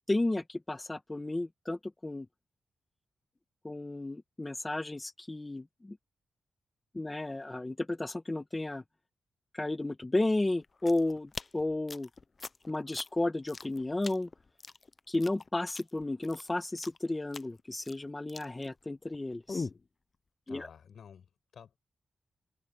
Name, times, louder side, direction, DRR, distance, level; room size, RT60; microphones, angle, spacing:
voice 1, 0.1-2.3 3.6-6.0 6.9-8.8 9.5-12.1 12.7-14.3 15.1-19.7 20.5-20.7, left 2 dB, 20° left, 1.2 m, -33 dB
sound 1, 10.6-19.2 19.5-19.9, left 4 dB, 35° left, 0.5 m, -43 dB
voice 2, 20.5-21.8, left 7 dB, 75° left, 4.9 m, -52 dB
wide cardioid pair, 105°, 0 cm